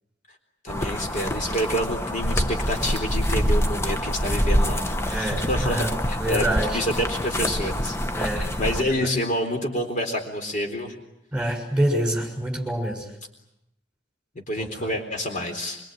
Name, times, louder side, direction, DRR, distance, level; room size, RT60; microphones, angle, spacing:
voice 1, 0.6-6.4 6.7-11.0 14.5-15.8, equal, 40° left, 4 dB, 3.9 m, -28 dB
sound 1, 0.7-8.8, equal, 15° left, 1.0 m, -26 dB
voice 2, 5.1-5.9 6.2-6.8 8.1-9.1 11.3-13.1 14.6-14.9, right 1 dB, 5° right, 2 dB, 6.7 m, -27 dB
25.5 x 24.5 x 9.2 m, 0.81 s
head